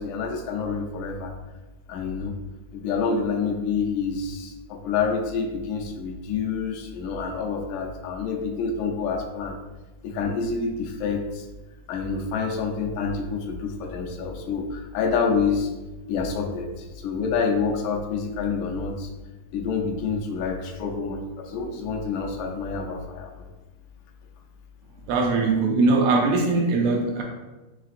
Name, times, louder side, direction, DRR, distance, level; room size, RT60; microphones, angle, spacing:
voice 1, 0.0-1.3 1.9-2.3 2.7-9.6 10.0-11.5 11.9-15.7 16.1-19.1 19.5-23.5, left 5 dB, 80° left, 3 dB, 1.9 m, -27 dB
voice 2, 25.1-27.2, right 3 dB, 80° right, 0 dB, 1.7 m, -21 dB
5.8 x 3.2 x 2.5 m, 1.1 s
omnidirectional pair, 3.4 m